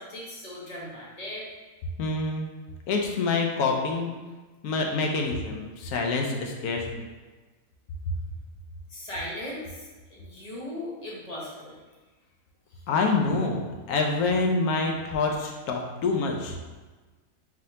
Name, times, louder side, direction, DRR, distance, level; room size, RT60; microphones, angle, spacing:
voice 1, 0.0-1.4 8.9-11.8, left 1 dB, 30° left, -5 dB, 0.9 m, -38 dB
voice 2, 2.0-2.5 2.9-4.1 4.6-7.1 12.9-13.6 13.9-16.5, left 3 dB, 80° left, 1 dB, 1.1 m, -26 dB
4.1 x 3.6 x 2.8 m, 1.3 s
omnidirectional pair, 1.6 m